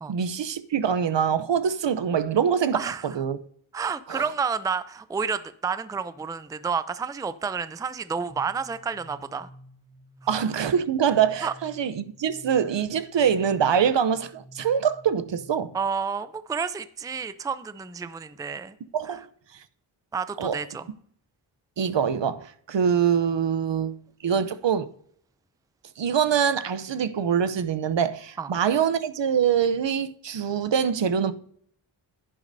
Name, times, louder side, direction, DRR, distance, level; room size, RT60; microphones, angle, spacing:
voice 1, 0.1-3.4 4.1-4.2 10.3-15.7 18.9-19.2 20.4-20.5 21.8-23.9 24.2-24.9 26.0-31.3, right 7 dB, 60° right, 0.7 m, -24 dB
voice 2, 2.7-3.1 3.7-9.5 11.4-11.5 15.7-18.7 19.1-19.2 20.1-20.9 28.4-28.5, right 6 dB, 10° right, 0.4 m, -30 dB
sound 1, 8.3-15.9, equal, 25° right, 1.4 m, -50 dB
10.5 x 10.5 x 2.7 m
cardioid pair, 55°, 49 cm